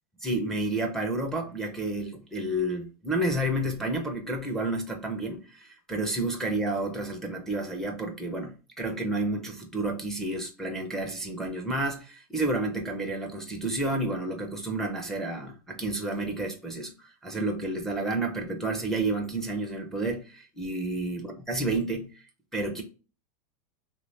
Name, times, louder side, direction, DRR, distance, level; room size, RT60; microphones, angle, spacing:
voice 1, 0.2-22.2 22.5-22.8, right 2 dB, ahead, 0.4 m, -30 dB
2.7 x 2.7 x 3.1 m
supercardioid pair, 150°, 21 cm